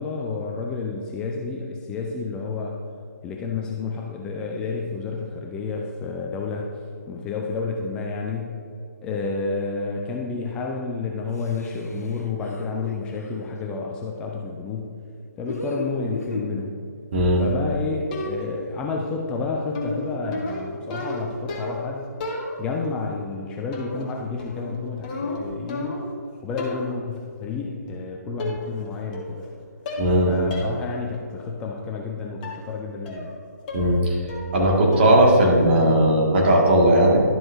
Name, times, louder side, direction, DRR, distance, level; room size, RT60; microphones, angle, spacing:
voice 1, 0.0-2.8 3.2-6.7 7.1-8.6 9.0-14.9 15.4-16.8 17.4-22.1 22.6-26.0 26.4-29.5 30.2-33.4, left 4 dB, 10° left, 0 dB, 0.3 m, -30 dB
sound 1, 11.3-13.5 15.5-16.6, left 2 dB, 60° left, 0.9 m, -35 dB
sound 2, 18.1-18.7 19.7-21.9 22.2-22.9 23.7-24.1 24.4-26.2 26.6-27.0 27.9-28.0 28.4-28.9 29.1-29.5 29.9-30.2 30.5-30.7 31.1-31.2 32.4-32.7 33.1-33.4 33.7-34.0 34.3-34.7 34.9-35.3, left 2 dB, 30° left, 1.2 m, -33 dB
voice 2, 30.0-30.3 33.7-34.2 34.5-37.2, right 1 dB, 40° right, -2 dB, 1.8 m, -17 dB
11.5 x 7.5 x 2.6 m, 2.5 s
figure-of-eight pair, 140°, 9 cm